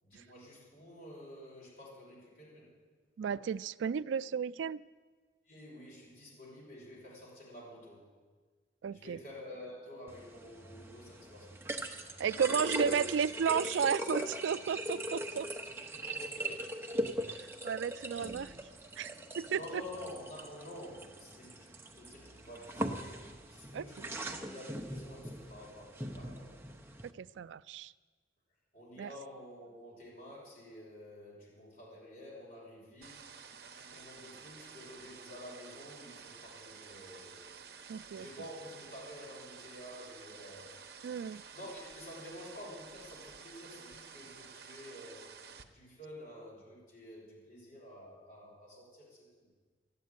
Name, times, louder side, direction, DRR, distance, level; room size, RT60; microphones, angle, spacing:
voice 1, 0.0-2.8 5.5-8.1 8.9-11.7 15.7-16.9 19.5-26.6 28.7-33.3 33.7-37.4 38.1-40.8 41.5-45.3 45.7-49.3, left 1 dB, 50° left, -5 dB, 5.8 m, -50 dB
voice 2, 3.2-4.8 8.8-9.2 12.2-15.5 17.4-18.5 19.0-19.6 23.7-23.9 27.2-27.9 29.0-29.1 37.9-38.3 41.0-41.4, right 7 dB, 85° right, 17 dB, 0.3 m, -33 dB
sound 1, 10.1-27.1, right 1 dB, 15° right, 0.7 m, -40 dB
sound 2, 33.0-45.6, right 6 dB, 55° right, 0.8 m, -52 dB
13.0 x 8.3 x 9.4 m, 1.4 s
head